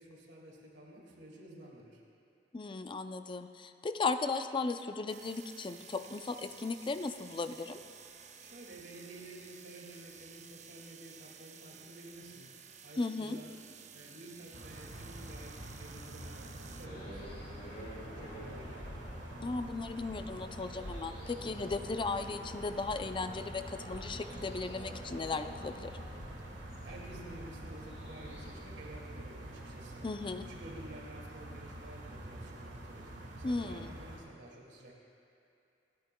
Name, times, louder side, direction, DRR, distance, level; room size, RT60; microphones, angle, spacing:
voice 1, 0.0-2.0 8.4-13.6 13.9-18.8 26.5-30.1 30.5-35.0, right 1 dB, 70° right, -2 dB, 2.2 m, -51 dB
voice 2, 2.5-7.8 13.0-13.4 19.4-25.9 30.0-30.5 33.4-33.9, left 3 dB, 30° left, 8 dB, 0.4 m, -36 dB
sound 1, 5.1-16.9, right 7 dB, 40° right, 0.7 m, -54 dB
sound 2, 14.5-34.2, right 1 dB, 90° right, 1.6 m, -47 dB
sound 3, 16.8-28.5, equal, 55° left, 2.6 m, -48 dB
29.0 x 10.5 x 2.3 m, 2.6 s
head